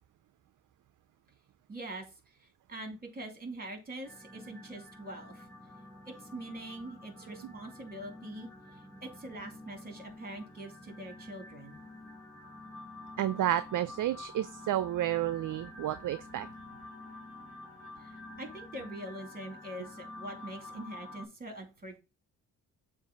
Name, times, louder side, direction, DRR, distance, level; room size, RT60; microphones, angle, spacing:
voice 1, 1.7-2.1 2.4-5.5 6.1-8.5 9.0-11.8 18.0-22.0, right 1 dB, 20° right, 3 dB, 2.5 m, -44 dB
sound 1, 4.0-21.3, left 2 dB, 5° left, 2.4 m, -49 dB
voice 2, 13.2-16.5, right 12 dB, 50° right, 13 dB, 0.5 m, -31 dB
7.1 x 2.6 x 5.2 m, 0.30 s
supercardioid pair, 50°, 41 cm